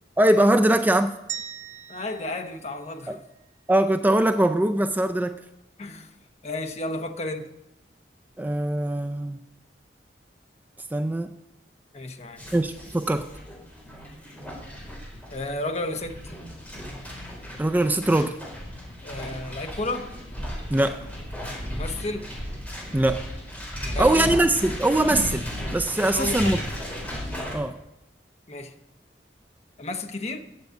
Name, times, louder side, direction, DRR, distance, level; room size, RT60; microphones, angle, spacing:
voice 1, 0.2-1.2 3.1-3.2 3.7-5.4 8.4-9.4 10.9-11.3 12.5-13.3 17.6-18.4 20.7-21.0 22.9-23.2 24.0-26.6 27.5-27.8, right 1 dB, 10° right, 0.3 m, -22 dB
sound 1, 1.3-3.5, right 9 dB, 45° right, 0.8 m, -40 dB
voice 2, 1.9-3.2 5.8-6.1 6.4-7.5 11.9-12.5 15.3-16.3 19.0-20.1 21.7-22.3 23.8-24.3 26.0-26.7 28.5-28.7 29.8-30.5, left 2 dB, 40° left, 0.9 m, -32 dB
sound 2, 12.4-27.6, equal, 10° left, 4.1 m, -35 dB
9.5 x 7.8 x 8.0 m
head